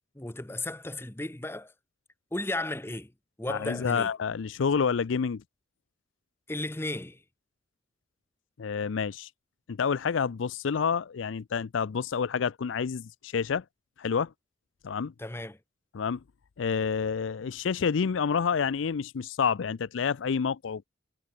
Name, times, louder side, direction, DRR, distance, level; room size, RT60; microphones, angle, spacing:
voice 1, 0.1-1.7 2.3-3.1 3.4-4.1 6.5-7.2 15.2-15.6, left 2 dB, 10° left, 1.0 m, -34 dB
voice 2, 3.5-5.4 8.6-9.3 9.7-13.6 14.0-14.3 14.8-15.1 15.9-16.2 16.6-20.8, left 6 dB, 75° left, 0.5 m, -28 dB
head